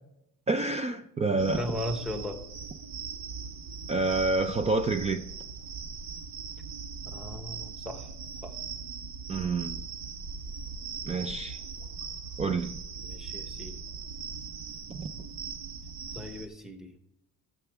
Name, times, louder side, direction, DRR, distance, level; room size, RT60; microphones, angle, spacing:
voice 1, 0.5-1.7 3.9-5.2 9.3-9.8 11.1-11.6 12.4-12.8 14.9-15.1, right 3 dB, 20° right, 0.3 m, -28 dB
sound 1, 1.4-16.5, right 5 dB, 80° right, 1.2 m, -40 dB
voice 2, 1.6-2.4 7.0-8.1 8.4-8.6 13.0-13.8 16.1-16.9, left 1 dB, ahead, 1.0 m, -37 dB
15.0 x 7.1 x 3.5 m
cardioid pair, 160°, 34 cm